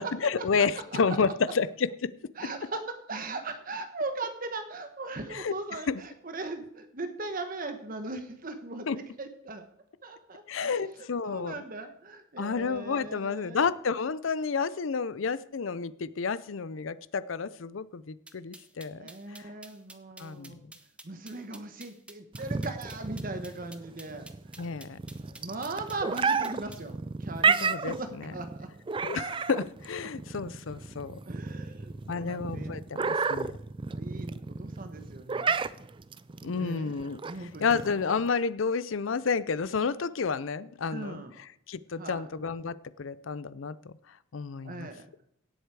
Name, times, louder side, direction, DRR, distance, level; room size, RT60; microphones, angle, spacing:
voice 1, 0.0-2.1 5.3-6.0 8.9-9.0 10.5-11.6 12.4-19.5 20.2-20.5 24.6-25.0 27.6-28.3 29.0-31.2 32.1-33.5 36.4-41.2 41.7-43.9 44.3-44.9, left 5 dB, 80° left, 17 dB, 0.6 m, -31 dB
voice 2, 2.4-9.6 10.0-10.7 11.2-13.6 18.8-20.6 21.0-24.2 25.4-28.7 31.3-32.8 33.9-35.6 36.6-36.9 37.2-37.8 40.9-41.3 42.0-42.3 44.6-45.0, right 3 dB, 45° right, 7 dB, 1.1 m, -39 dB
sound 1, 18.3-26.9, right 2 dB, 5° right, 0.9 m, -50 dB
sound 2, 22.4-38.3, right 5 dB, 25° right, 0.4 m, -32 dB
17.0 x 8.0 x 4.8 m, 0.73 s
head